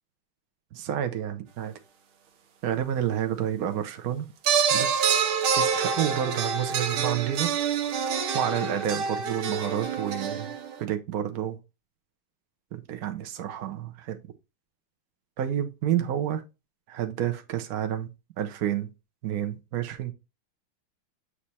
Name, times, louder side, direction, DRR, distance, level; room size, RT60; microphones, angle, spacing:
voice 1, 0.7-1.7 2.6-4.3 4.7-5.2 5.6-7.5 8.3-10.5 10.8-11.6 12.7-14.2 15.4-16.4 16.9-18.1 18.4-18.9 19.2-20.1, right 10 dB, 60° right, 1.0 m, -29 dB
sound 1, 4.4-10.8, right 6 dB, 85° right, 1.7 m, -26 dB
7.3 x 3.3 x 4.1 m
omnidirectional pair, 2.3 m